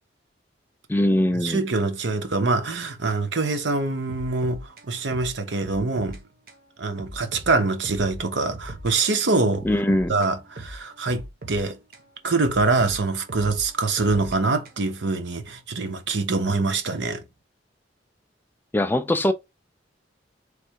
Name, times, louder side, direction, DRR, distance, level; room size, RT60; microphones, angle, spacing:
voice 1, 0.9-1.6 9.6-10.1 18.7-19.3, left 1 dB, 10° left, 0.3 m, -21 dB
voice 2, 1.4-6.2 6.8-9.7 10.1-11.8 12.2-17.2, right 3 dB, 80° right, 0.9 m, -24 dB
sound 1, 4.1-6.2 6.5-6.6 7.0-8.9 9.2-12.1 12.4-15.0, right 1 dB, 55° right, 1.0 m, -40 dB
3.3 x 3.2 x 4.5 m
head